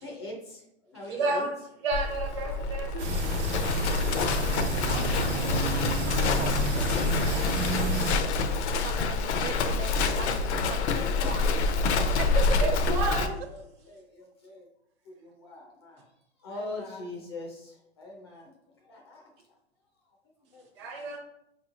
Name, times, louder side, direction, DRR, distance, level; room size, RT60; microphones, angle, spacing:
voice 1, 0.0-1.5 2.5-3.5 10.9-12.1 12.5-13.2 13.5-14.7 15.1-16.1 16.4-18.5 18.8-19.3 20.5-21.0, left 2 dB, 25° left, -1 dB, 0.4 m, -43 dB
voice 2, 1.1-1.5 1.8-3.1 12.6-13.4 20.8-21.2, right 3 dB, 25° right, 1 dB, 0.6 m, -30 dB
Livestock farm animals working animals, 1.9-13.3, left 4 dB, 75° left, 0.6 m, -27 dB
sound 1, 3.0-8.1, right 3 dB, 90° right, 1.1 m, -30 dB
voice 3, 4.9-5.7 6.0-8.3 8.8-11.6 12.1-12.7, right 7 dB, 65° right, 9 dB, 0.5 m, -40 dB
4.8 x 3.1 x 2.4 m, 0.79 s
hypercardioid pair, 170°, 34 cm